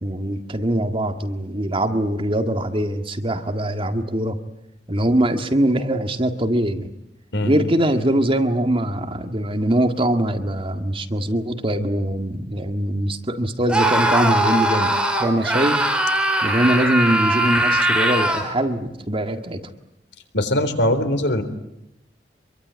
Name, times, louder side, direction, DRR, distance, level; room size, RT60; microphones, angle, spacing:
voice 1, 0.0-4.4 4.9-6.9 7.4-14.9 15.2-15.8 16.4-19.6, right 1 dB, 30° right, 7 dB, 1.9 m, -22 dB
Screaming, 13.7-18.5, right 1 dB, 5° right, 4.3 m, -20 dB
voice 2, 20.3-21.4, left 1 dB, 75° left, 9 dB, 3.8 m, -21 dB
26.0 x 23.5 x 9.5 m, 0.85 s
head